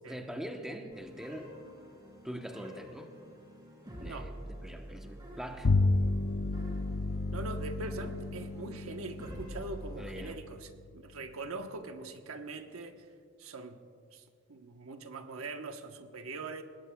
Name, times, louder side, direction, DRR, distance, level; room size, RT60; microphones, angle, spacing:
voice 1, 0.1-1.5 2.2-3.1 4.0-5.7 10.0-10.4, equal, ahead, 3 dB, 0.9 m, -42 dB
sound 1, 0.9-10.3, equal, 20° right, 3.3 m, -48 dB
Bowed string instrument, 5.6-11.3, left 2 dB, 60° left, 0.5 m, -32 dB
voice 2, 7.3-13.1 13.4-13.8 14.1-16.6, right 3 dB, 85° right, 6 dB, 1.1 m, -42 dB
25.0 x 20.0 x 2.3 m, 2.2 s
head